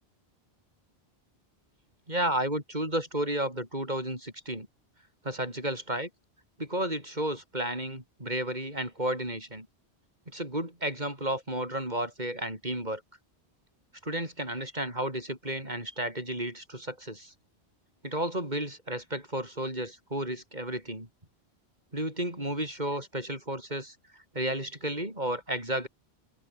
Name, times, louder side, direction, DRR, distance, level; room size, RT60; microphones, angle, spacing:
voice 1, 2.1-4.7 5.2-6.1 6.6-9.7 10.3-13.0 14.0-17.3 18.0-21.1 21.9-25.9, right 1 dB, 40° right, 7.7 m, -32 dB
omnidirectional pair, 1.1 m